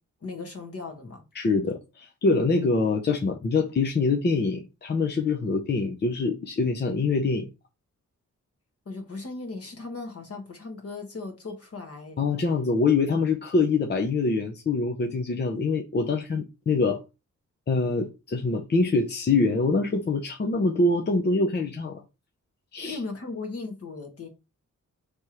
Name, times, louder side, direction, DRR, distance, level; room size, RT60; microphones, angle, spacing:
voice 1, 0.2-1.2 8.8-12.3 22.8-24.3, left 3 dB, 50° left, 1.4 m, -37 dB
voice 2, 1.3-7.5 12.2-17.0 17.7-22.0 22.7-23.0, left 3 dB, 35° left, 0.6 m, -24 dB
3.4 x 2.9 x 4.7 m
wide cardioid pair, 125°, 30 cm